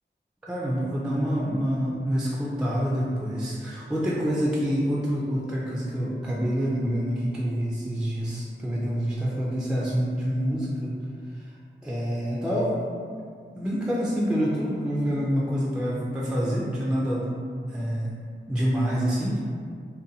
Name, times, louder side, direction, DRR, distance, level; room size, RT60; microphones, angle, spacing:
voice 1, 0.5-10.9 11.4-11.5 11.8-12.7 13.1-13.2 13.5-17.3 17.7-18.1 18.5-19.4, equal, 5° right, -5 dB, 0.3 m, -27 dB
2.6 x 2.1 x 2.7 m, 2.1 s
wide cardioid pair, 105°, 19 cm